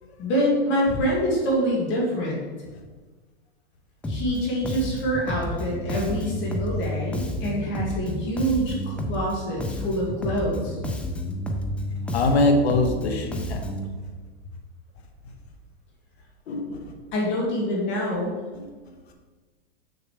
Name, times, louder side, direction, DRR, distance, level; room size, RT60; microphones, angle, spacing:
voice 1, 0.2-2.4 4.1-10.7 17.1-18.3, equal, 35° left, -3 dB, 2.1 m, -26 dB
Bass guitar, 4.0-4.4 4.6-9.3 9.6-13.9, left 1 dB, 5° left, 0.3 m, -30 dB
voice 2, 12.1-13.7 16.5-16.9 18.5-18.7, left 2 dB, 75° left, 4 dB, 1.4 m, -23 dB
6.8 x 6.6 x 3.3 m, 1.4 s
hypercardioid pair, 125°, 32 cm